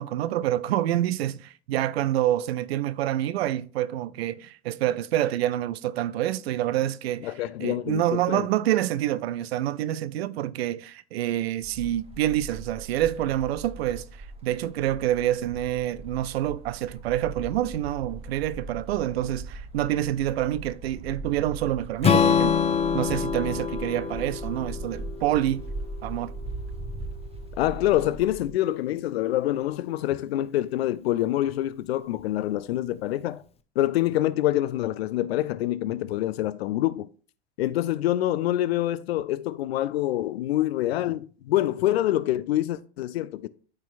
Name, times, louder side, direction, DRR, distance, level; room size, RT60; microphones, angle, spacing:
voice 1, 0.0-7.3 7.6-22.6 22.9-25.6 26.0-26.3, right 13 dB, 70° right, 0.5 m, -27 dB
voice 2, 7.2-8.4 27.6-33.4 33.8-37.1 37.6-43.5, left 14 dB, 70° left, 0.6 m, -26 dB
sound 1, 11.6-28.5, right 2 dB, 20° right, 0.9 m, -39 dB
Strum, 22.0-26.2, left 7 dB, 20° left, 0.6 m, -25 dB
12.5 x 4.5 x 2.5 m
hypercardioid pair, 85°, 32 cm